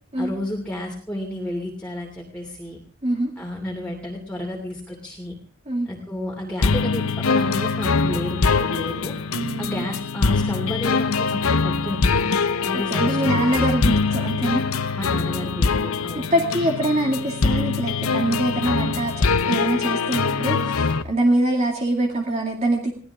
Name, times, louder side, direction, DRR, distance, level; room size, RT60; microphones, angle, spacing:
voice 1, 0.1-2.8 3.4-5.3 5.9-9.2 9.6-12.2 12.6-13.4 15.0-16.3, left 1 dB, 5° left, -2 dB, 2.8 m, -31 dB
sound 1, 6.6-21.0, left 4 dB, 80° left, 0.9 m, -23 dB
voice 2, 9.3-9.8 12.7-14.6 16.2-19.1 19.5-22.9, right 1 dB, 30° right, 0 dB, 2.2 m, -24 dB
21.5 x 17.0 x 3.6 m, 0.41 s
head